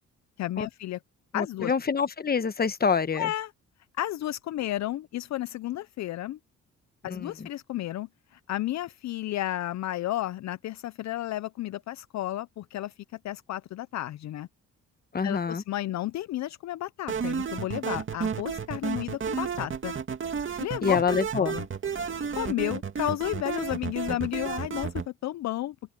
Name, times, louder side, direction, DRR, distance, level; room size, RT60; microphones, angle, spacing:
voice 1, 0.4-1.0 1.3-1.7 3.1-3.5 4.0-6.4 7.0-12.9 13.2-14.5 15.2-19.9 20.6-21.0 21.4-21.7 22.4-25.9, left 14 dB, 65° left, 0.6 m, -32 dB
voice 2, 1.3-3.3 7.0-7.5 15.1-15.6 20.8-21.5, left 6 dB, 30° left, 1.3 m, -26 dB
sound 1, 17.1-25.1, right 6 dB, 40° right, 2.4 m, -32 dB
open air
cardioid pair, 90°, 30 cm